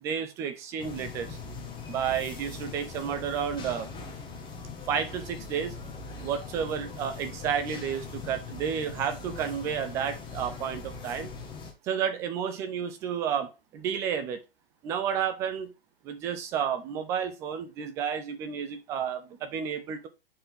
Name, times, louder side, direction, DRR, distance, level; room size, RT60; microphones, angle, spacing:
voice 1, 0.0-1.4 1.9-3.9 4.9-5.8 6.2-11.3 11.8-14.4 14.8-15.7 16.0-20.1, right 8 dB, 10° right, 0.4 m, -31 dB
sound 1, 0.8-11.7, left 4 dB, 15° left, 1.4 m, -41 dB
8.5 x 4.6 x 3.5 m
figure-of-eight pair, 125°, 30 cm